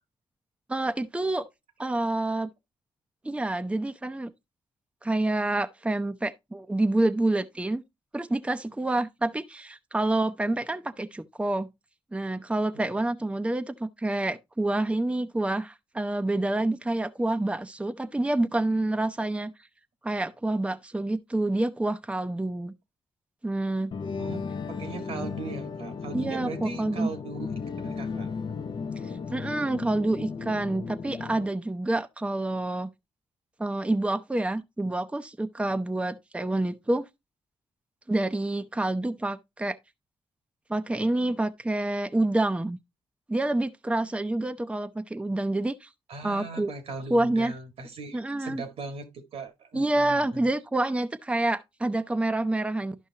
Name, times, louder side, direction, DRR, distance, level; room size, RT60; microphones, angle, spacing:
voice 1, 0.7-1.4 1.8-2.5 3.2-4.3 5.0-7.8 8.1-11.7 12.1-19.5 20.0-22.7 23.4-23.9 26.1-27.1 29.3-32.9 33.6-37.1 38.1-39.8 40.7-42.8 43.3-45.9 46.2-46.7 47.1-47.5 48.1-48.6 49.7-53.0, right 2 dB, 10° right, 0.6 m, -27 dB
sound 1, 23.9-31.5, left 5 dB, 50° left, 0.7 m, -35 dB
voice 2, 24.7-27.5 27.8-28.3 46.1-49.0 49.3-50.5, right 4 dB, 80° right, 1.7 m, -39 dB
11.5 x 5.5 x 2.8 m
supercardioid pair, 55°, 10 cm